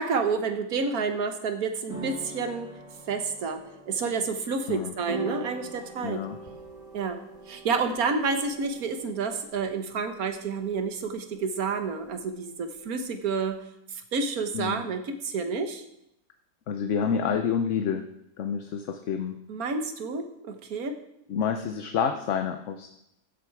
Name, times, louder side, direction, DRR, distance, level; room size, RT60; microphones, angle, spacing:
voice 1, 0.0-2.7 3.1-6.3 6.9-7.2 7.5-13.6 14.1-15.8 19.5-21.0, right 4 dB, 85° right, 8 dB, 1.6 m, -29 dB
sound 1, 1.9-9.2, right 1 dB, 5° right, 3.0 m, -47 dB
sound 2, 5.1-13.5, right 3 dB, 25° right, 1.9 m, -44 dB
voice 2, 6.0-6.4 14.5-14.8 16.7-18.0 18.4-19.4 21.3-22.9, left 7 dB, 60° left, 7 dB, 1.1 m, -28 dB
14.5 x 8.0 x 4.7 m, 0.79 s
omnidirectional pair, 1.5 m